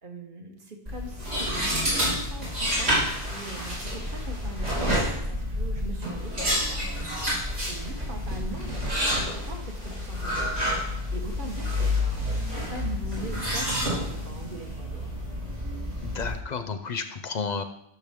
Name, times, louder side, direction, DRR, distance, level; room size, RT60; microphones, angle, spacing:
voice 1, 0.0-7.1 7.6-15.1, right 2 dB, 55° right, 3 dB, 1.4 m, -41 dB
sound 1, 0.8-16.3, left 1 dB, 70° right, 3.4 m, -29 dB
voice 2, 16.0-17.6, left 5 dB, 50° left, 9 dB, 0.6 m, -32 dB
11.0 x 6.2 x 3.6 m, 0.77 s
omnidirectional pair, 1.1 m